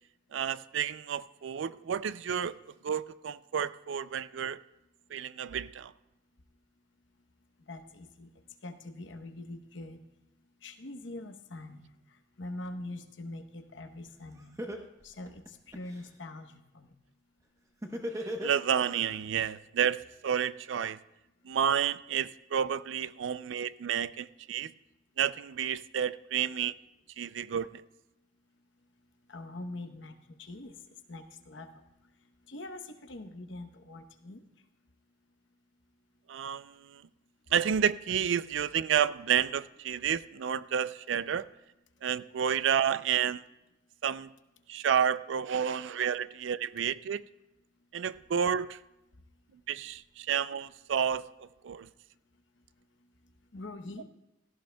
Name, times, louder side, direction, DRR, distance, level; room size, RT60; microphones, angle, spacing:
voice 1, 0.3-2.6 2.8-4.6 5.1-5.9 18.2-21.0 21.4-24.7 25.2-26.8 27.2-27.8 36.3-37.0 37.5-41.5 42.0-43.4 44.0-44.3 44.7-47.2 47.9-48.8 49.7-51.3 51.6-51.9, right 8 dB, 70° right, 0.4 m, -30 dB
voice 2, 7.7-8.3 8.6-10.0 10.6-11.9 12.4-14.6 15.0-16.9 29.3-30.8 31.1-31.8 32.5-34.4 53.5-54.0, left 2 dB, 65° left, 0.9 m, -43 dB
Laughter, 14.1-14.2 14.6-16.0 17.8-19.0, equal, 15° right, 0.9 m, -36 dB
16.5 x 14.5 x 2.2 m
head